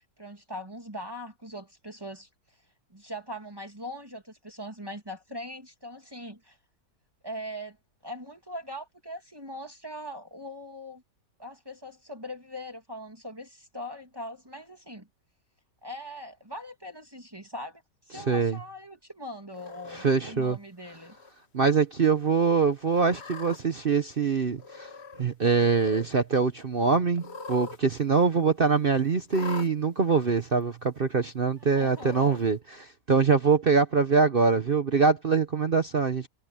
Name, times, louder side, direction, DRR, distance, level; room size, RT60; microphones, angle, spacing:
voice 1, 0.0-2.3 2.9-6.6 7.2-7.8 8.0-11.0 11.4-15.1 15.8-17.8 18.1-21.1 31.6-32.4, equal, 15° right, 2.5 m, -41 dB
voice 2, 18.1-18.6 19.9-20.6 21.5-24.9 25.2-36.3, right 5 dB, 40° right, 0.8 m, -24 dB
Cat, 19.5-20.1 20.9-21.3 21.7-21.8 22.9-23.6 24.6-25.2 25.5-26.1 27.1-27.8 28.1-28.2 29.3-29.7 30.6-30.7 31.8-32.4, left 4 dB, 40° left, 1.3 m, -42 dB
omnidirectional pair, 1.9 m